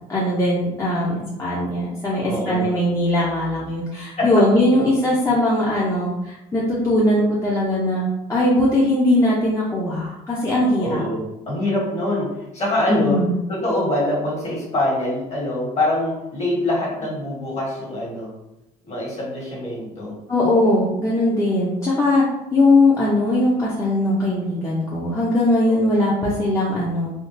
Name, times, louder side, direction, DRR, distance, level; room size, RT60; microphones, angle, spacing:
voice 1, 0.1-11.0 12.9-13.4 20.3-22.2 22.5-27.1, left 1 dB, 20° left, -7 dB, 0.7 m, -20 dB
voice 2, 2.2-2.7 4.2-4.4 10.7-13.2 13.5-18.3 18.8-20.2 25.7-25.9, left 1 dB, 40° left, -4 dB, 1.5 m, -24 dB
3.6 x 2.3 x 2.6 m, 0.90 s
cardioid pair, 110°, 17 cm